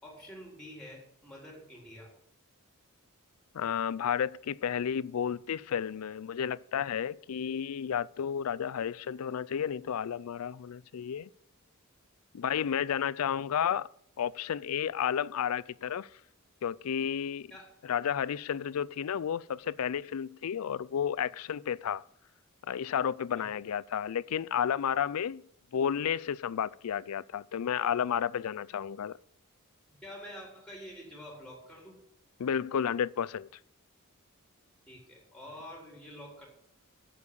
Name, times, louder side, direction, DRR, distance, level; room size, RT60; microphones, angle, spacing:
voice 1, 0.0-2.1 17.5-17.8 23.3-23.5 30.0-32.0 34.9-36.5, equal, 5° left, 3.8 m, -47 dB
voice 2, 3.5-11.3 12.3-13.9 14.2-16.1 16.6-17.5 17.8-22.0 22.7-25.4 25.7-29.2 32.4-33.5, left 8 dB, 85° left, 0.4 m, -32 dB
8.4 x 7.4 x 8.6 m
head